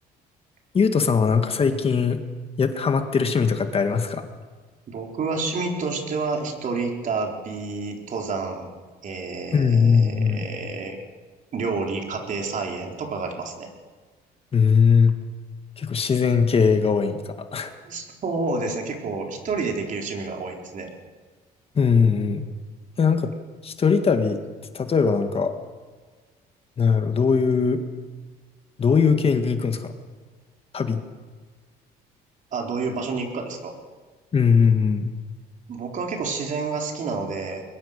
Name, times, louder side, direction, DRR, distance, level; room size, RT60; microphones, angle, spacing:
voice 1, 0.7-2.2 2.6-4.3 9.5-10.4 14.5-15.1 15.8-17.7 21.8-22.4 23.0-23.3 23.6-24.4 24.7-25.5 26.8-27.8 28.8-29.9 30.7-31.0 34.3-35.1, left 5 dB, 35° left, 7 dB, 1.8 m, -20 dB
voice 2, 4.9-8.7 9.0-11.0 11.5-13.7 17.8-20.9 32.5-33.8 35.7-37.6, right 4 dB, 50° right, 2 dB, 4.3 m, -29 dB
22.0 x 21.5 x 6.7 m, 1.5 s
cardioid pair, 110°, 17 cm